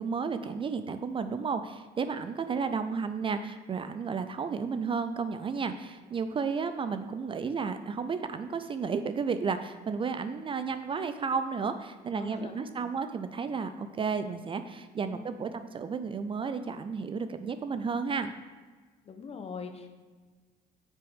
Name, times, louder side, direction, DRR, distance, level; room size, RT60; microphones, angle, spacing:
voice 1, 0.0-18.3, right 5 dB, 30° right, 10 dB, 0.4 m, -32 dB
voice 2, 12.1-12.7 15.0-15.5 19.0-19.9, left 5 dB, 35° left, 6 dB, 0.9 m, -42 dB
9.5 x 6.0 x 3.6 m, 1.4 s
cardioid pair, 110°, 17 cm